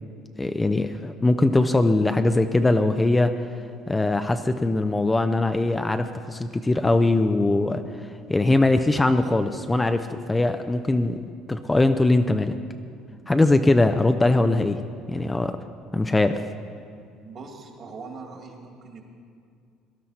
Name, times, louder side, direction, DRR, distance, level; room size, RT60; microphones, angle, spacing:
voice 1, 0.4-3.3 3.9-12.5 13.3-14.8 15.1-15.6 15.9-16.4, left 2 dB, 15° left, 8 dB, 0.5 m, -21 dB
voice 2, 17.2-19.0, right 4 dB, 45° right, 3 dB, 2.2 m, -41 dB
18.5 x 11.0 x 4.2 m, 2.3 s
supercardioid pair, 100°, 0 cm